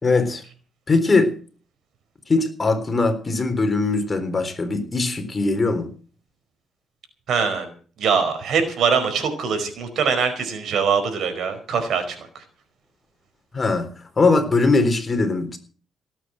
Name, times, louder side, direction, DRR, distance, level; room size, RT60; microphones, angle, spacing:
voice 1, 0.0-0.4 0.9-1.4 2.3-5.9 13.5-15.6, left 3 dB, 30° left, 7 dB, 3.8 m, -21 dB
voice 2, 7.3-7.7 8.0-12.3, right 6 dB, 65° right, 7 dB, 4.8 m, -22 dB
18.0 x 8.8 x 7.7 m, 0.41 s
cardioid pair, 90°, 0 cm